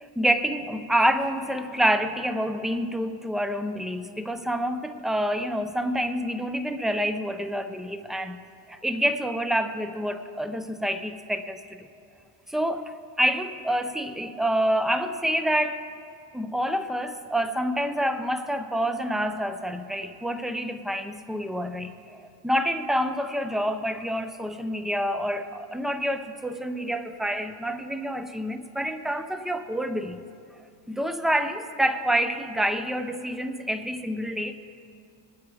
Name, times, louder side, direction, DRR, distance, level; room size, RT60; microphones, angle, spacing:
voice 1, 0.0-8.4 8.7-11.9 12.5-15.8 16.3-30.2 30.9-34.6, equal, ahead, 9 dB, 0.6 m, -27 dB
20.5 x 8.2 x 4.9 m, 2.4 s
cardioid pair, 110°, 40 cm